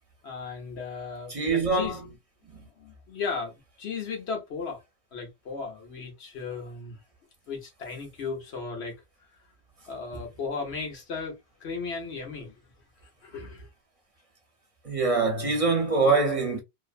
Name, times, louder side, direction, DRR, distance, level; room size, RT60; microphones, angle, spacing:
voice 1, 0.2-2.0 2.5-4.8 5.1-7.0 7.5-9.0 9.9-12.6 13.2-13.7, left 5 dB, 90° left, 1.3 m, -36 dB
voice 2, 1.3-2.0 14.8-16.6, right 3 dB, 35° right, 0.7 m, -24 dB
3.0 x 2.1 x 2.4 m
omnidirectional pair, 1.1 m